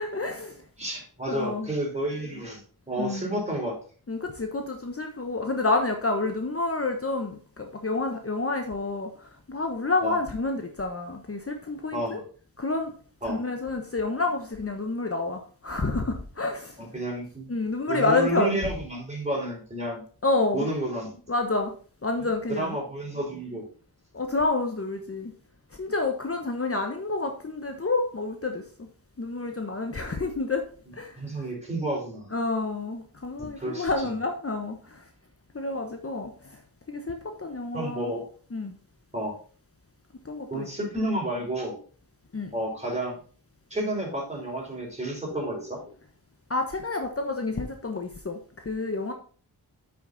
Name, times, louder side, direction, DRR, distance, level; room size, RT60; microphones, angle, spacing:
voice 1, 0.0-0.6 1.3-1.7 3.0-3.4 4.1-12.2 12.6-12.9 13.3-16.8 17.5-18.6 20.2-20.7 21.3-21.8 22.0-22.8 24.1-25.3 25.7-28.9 29.2-30.7 30.9-31.1 32.3-35.0 35.5-36.6 36.9-38.1 38.5-38.8 40.2-40.7 42.3-42.5 46.5-49.1, left 3 dB, 35° left, 4 dB, 1.2 m, -29 dB
voice 2, 0.8-2.6 2.9-3.8 10.0-10.2 11.9-12.2 13.2-13.4 16.8-17.5 17.9-20.0 20.5-21.2 22.5-23.7 31.2-32.3 33.4-34.1 37.7-38.2 39.1-39.3 40.5-41.8 42.5-43.2 43.7-45.9, right 1 dB, 15° right, -2 dB, 4.7 m, -31 dB
8.1 x 6.1 x 4.1 m, 0.43 s
cardioid pair, 55°, 38 cm